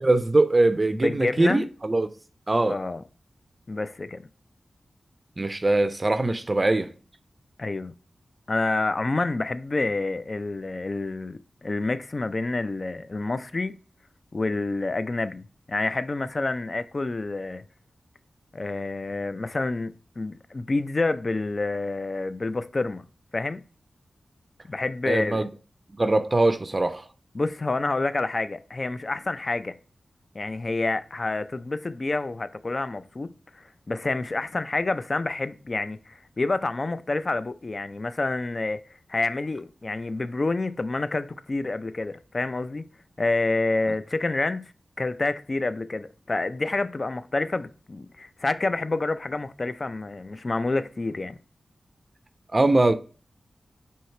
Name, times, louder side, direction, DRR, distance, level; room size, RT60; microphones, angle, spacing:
voice 1, 0.0-2.1 2.5-2.8 5.4-6.9 25.1-25.5 26.0-27.1 52.5-52.9, right 2 dB, 35° right, 0.4 m, -22 dB
voice 2, 1.0-1.6 2.7-3.0 3.7-4.2 7.6-7.9 8.5-13.8 14.3-17.6 18.5-23.0 23.3-23.6 24.7-25.5 27.3-29.8 30.3-38.8 39.1-42.8 43.2-44.7 45.0-51.4, left 2 dB, 45° left, 0.4 m, -28 dB
4.5 x 2.8 x 4.2 m
cardioid pair, 55°, 0 cm